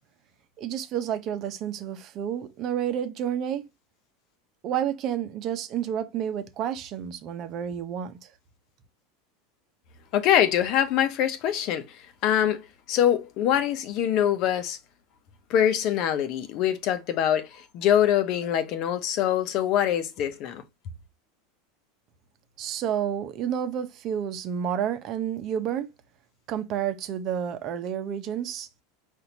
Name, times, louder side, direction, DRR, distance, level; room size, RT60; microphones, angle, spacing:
voice 1, 0.6-3.7 4.6-8.2 22.6-25.9 26.5-28.7, right 9 dB, 45° right, 0.8 m, -30 dB
voice 2, 10.1-11.9 12.2-14.8 15.5-20.6, left 10 dB, 55° left, 0.8 m, -24 dB
4.3 x 2.6 x 4.0 m
hypercardioid pair, 105°, 0 cm